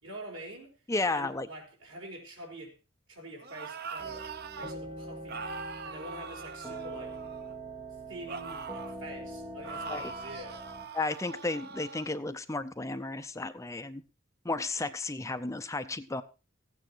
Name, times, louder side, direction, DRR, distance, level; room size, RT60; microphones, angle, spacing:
voice 1, 0.0-0.8 1.1-2.7 3.1-4.3 4.6-5.5 5.8-7.2 8.1-10.7, right 1 dB, 80° right, 1 dB, 4.7 m, -45 dB
voice 2, 0.9-1.5 9.9-10.0 10.9-14.0 14.4-16.2, left 3 dB, 15° left, 10 dB, 0.6 m, -33 dB
sound 1, 3.4-4.7 5.3-7.6 8.3-9.0 9.6-12.1, right 4 dB, 50° right, 0.9 m, -42 dB
sound 2, 4.0-10.9, right 2 dB, 20° right, 1.7 m, -43 dB
15.5 x 9.1 x 4.5 m, 0.33 s
head